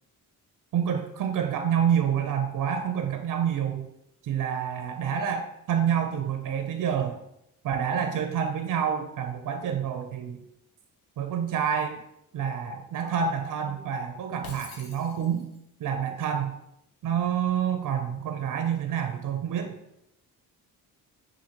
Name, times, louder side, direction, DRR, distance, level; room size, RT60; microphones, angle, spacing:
voice 1, 0.7-3.9 4.2-7.2 7.6-10.4 11.2-12.0 12.3-15.5 15.8-16.5 17.0-19.7, right 8 dB, 55° right, 5 dB, 0.5 m, -28 dB
Shatter, 14.4-15.6, left 4 dB, 70° left, 0.9 m, -45 dB
5.7 x 2.6 x 2.9 m, 0.83 s
cardioid pair, 80°, 37 cm